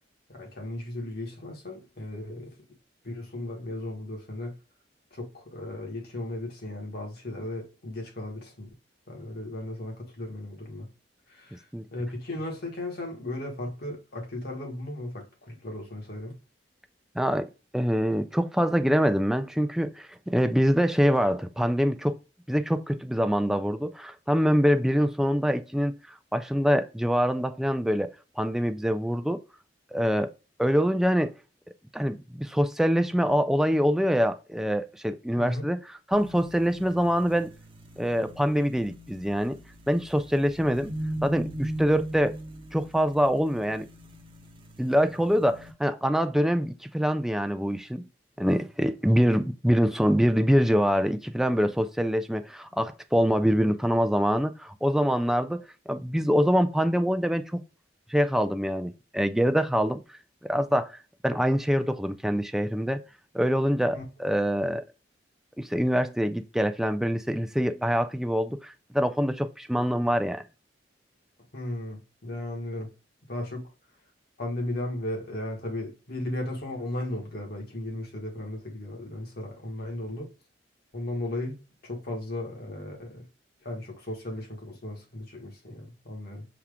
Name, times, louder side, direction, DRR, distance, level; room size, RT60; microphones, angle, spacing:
voice 1, 0.3-2.5 3.0-4.5 5.1-8.7 9.1-10.9 11.3-11.7 11.9-16.4 35.4-35.7 63.9-64.0 71.5-72.9 73.3-73.6 74.4-80.3 80.9-81.6 81.8-83.2 83.6-86.4, left 1 dB, 60° left, 1.5 m, -36 dB
voice 2, 17.2-22.2 22.5-25.9 26.3-28.1 28.4-29.4 29.9-30.3 30.6-31.3 31.9-35.8 36.1-37.5 38.0-39.6 39.9-40.9 41.2-42.4 42.7-43.9 44.8-48.0 48.4-57.6 58.1-60.0 60.5-63.0 63.3-64.8 65.6-70.4, equal, ahead, 0.3 m, -25 dB
sound 1, 36.1-45.7, right 1 dB, 30° right, 0.7 m, -39 dB
5.8 x 2.4 x 3.5 m
head